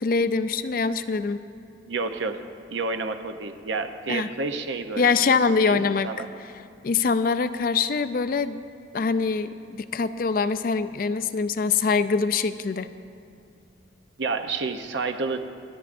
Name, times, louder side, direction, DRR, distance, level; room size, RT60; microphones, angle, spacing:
voice 1, 0.0-1.4 4.1-4.3 5.0-6.1 6.8-8.6 8.9-12.9, left 5 dB, 50° left, 11 dB, 0.4 m, -24 dB
voice 2, 1.9-2.4 2.7-6.3 14.2-15.4, right 4 dB, 75° right, 8 dB, 0.7 m, -30 dB
26.5 x 9.6 x 2.5 m, 2.4 s
head